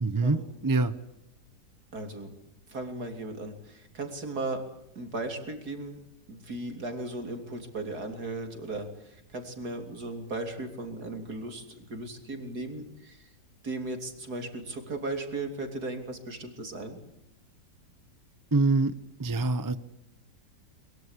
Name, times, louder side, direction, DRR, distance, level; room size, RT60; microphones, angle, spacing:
voice 1, 0.0-0.9 18.5-18.9 19.2-19.8, right 3 dB, 15° right, 13 dB, 0.7 m, -25 dB
voice 2, 1.9-2.3 2.7-4.6 5.0-6.0 6.3-13.2 13.6-17.0, right 2 dB, 65° right, 5 dB, 3.8 m, -36 dB
23.0 x 22.5 x 8.3 m, 0.83 s
omnidirectional pair, 1.8 m